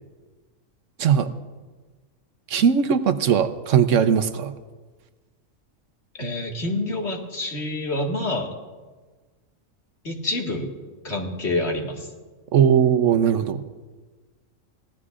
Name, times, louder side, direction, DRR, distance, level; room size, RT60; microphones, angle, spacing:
voice 1, 1.0-1.3 2.5-4.5 12.5-13.6, right 8 dB, 75° right, 10 dB, 1.1 m, -19 dB
voice 2, 6.2-8.5 10.0-10.7 11.0-12.1, left 2 dB, 55° left, 0 dB, 2.2 m, -27 dB
24.0 x 17.0 x 2.5 m, 1.3 s
omnidirectional pair, 1.3 m